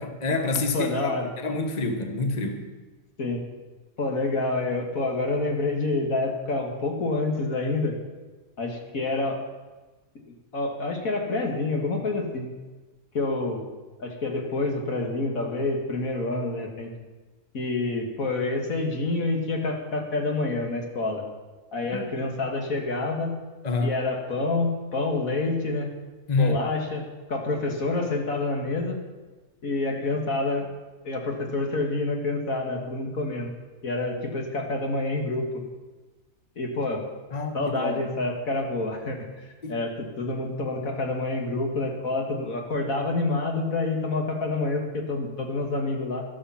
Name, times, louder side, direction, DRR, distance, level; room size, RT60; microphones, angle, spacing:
voice 1, 0.0-2.7 21.9-22.0 23.6-23.9 26.3-26.6 37.3-38.0 39.6-39.8, left 3 dB, 30° left, 5 dB, 1.4 m, -27 dB
voice 2, 0.7-1.3 3.2-3.4 4.0-8.0 8.6-9.4 10.5-12.5 13.1-13.7 14.0-16.9 17.5-21.2 21.7-23.4 23.8-25.9 26.4-29.0 29.6-30.7 31.0-33.5 33.8-35.5 36.6-37.0 37.5-39.3 39.7-46.2, left 2 dB, 80° left, 2 dB, 2.4 m, -27 dB
13.5 x 12.0 x 5.8 m, 1.2 s
omnidirectional pair, 1.4 m